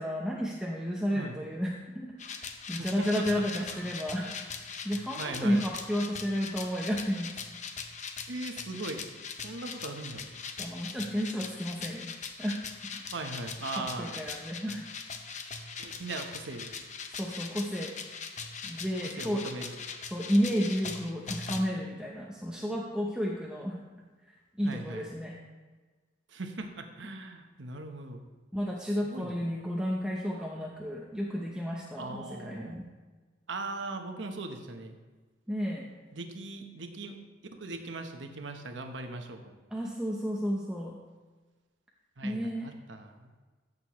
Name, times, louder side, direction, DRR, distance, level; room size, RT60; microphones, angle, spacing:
voice 1, 0.0-2.4 2.7-7.4 10.6-13.0 13.8-14.9 17.0-17.9 18.6-19.4 20.1-23.8 24.6-25.4 28.5-32.9 35.5-35.9 39.7-41.0 42.2-42.7, equal, 5° right, -2 dB, 0.7 m, -32 dB
sound 1, 2.2-21.6, left 5 dB, 40° left, 0.7 m, -41 dB
voice 2, 2.8-3.3 3.7-3.9 5.2-5.6 8.3-9.0 9.4-10.3 13.1-14.2 15.8-16.7 19.0-19.8 24.6-25.1 26.3-28.2 29.0-29.4 32.0-32.8 33.5-35.0 36.1-37.2 37.5-39.6 42.2-43.3, right 2 dB, 75° right, 5 dB, 1.0 m, -39 dB
14.5 x 6.6 x 3.1 m, 1.3 s
head